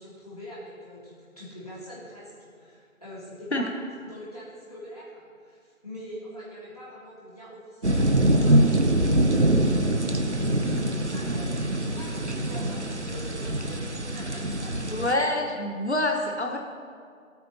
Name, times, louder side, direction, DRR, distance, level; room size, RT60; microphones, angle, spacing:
voice 1, 0.0-8.7 9.3-15.1, equal, 25° left, -9 dB, 3.0 m, -44 dB
sound 1, 7.8-15.1, right 1 dB, 55° right, 0.8 m, -24 dB
voice 2, 14.9-16.6, left 1 dB, 50° left, 2 dB, 1.2 m, -26 dB
24.5 x 9.3 x 3.0 m, 2.1 s
figure-of-eight pair, 175°, 42 cm